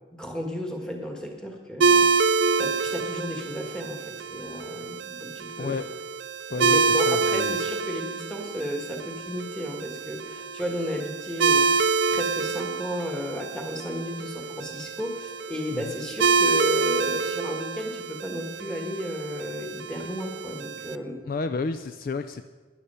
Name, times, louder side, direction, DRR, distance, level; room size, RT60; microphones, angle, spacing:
voice 1, 0.1-2.1 2.6-5.8 6.5-11.7 12.1-21.2, equal, 5° left, 2 dB, 1.6 m, -33 dB
sound 1, 1.8-21.0, right 4 dB, 65° right, 0.5 m, -27 dB
voice 2, 6.5-7.6 15.7-15.9 21.2-22.4, left 4 dB, 45° left, 10 dB, 0.4 m, -31 dB
13.0 x 10.0 x 5.6 m, 1.3 s
head